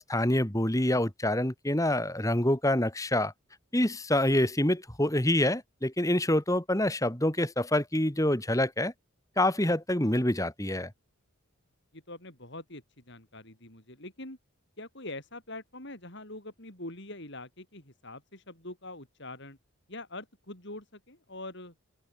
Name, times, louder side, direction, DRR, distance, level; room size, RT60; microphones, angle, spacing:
voice 1, 0.0-3.3 3.7-8.9 9.4-10.9, left 1 dB, 15° left, 2.3 m, -26 dB
voice 2, 11.9-14.4 14.8-19.6 19.9-21.7, left 2 dB, 55° left, 5.7 m, -44 dB
open air
head